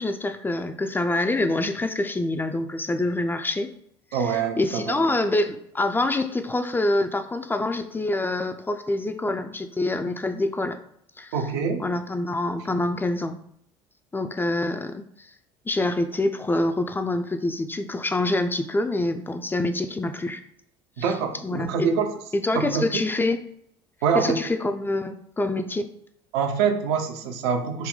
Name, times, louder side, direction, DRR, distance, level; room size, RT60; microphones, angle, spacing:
voice 1, 0.0-3.7 4.1-10.8 11.2-11.3 11.8-13.4 14.1-15.3 15.7-20.4 21.4-21.9 22.3-23.4 24.1-25.9, left 2 dB, 15° left, 7 dB, 0.4 m, -26 dB
voice 2, 4.1-5.1 11.3-11.9 21.0-22.1 22.6-23.0 24.0-24.4 26.3-27.9, right 6 dB, 70° right, 5 dB, 0.6 m, -25 dB
3.8 x 2.1 x 3.8 m, 0.70 s
hypercardioid pair, 65°, 14 cm